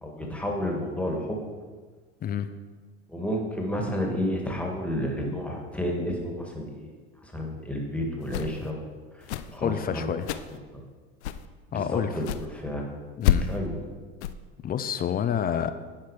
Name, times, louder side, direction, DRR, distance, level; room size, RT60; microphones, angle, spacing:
voice 1, 0.0-1.4 3.1-6.9 7.2-8.9 9.1-10.4 10.7-10.8 11.7-13.0 13.5-13.8, equal, 5° left, 0 dB, 1.8 m, -31 dB
sound 1, 8.2-8.7 9.2-9.6 10.2-10.6 11.2-11.5 12.2-12.5 13.2-13.6 14.2-14.3, left 10 dB, 90° left, 0.5 m, -28 dB
voice 2, 9.6-10.3 11.7-12.2 13.2-13.5 14.6-15.7, left 9 dB, 30° left, 11 dB, 0.5 m, -28 dB
10.5 x 4.5 x 4.8 m, 1.4 s
hypercardioid pair, 95°, 33 cm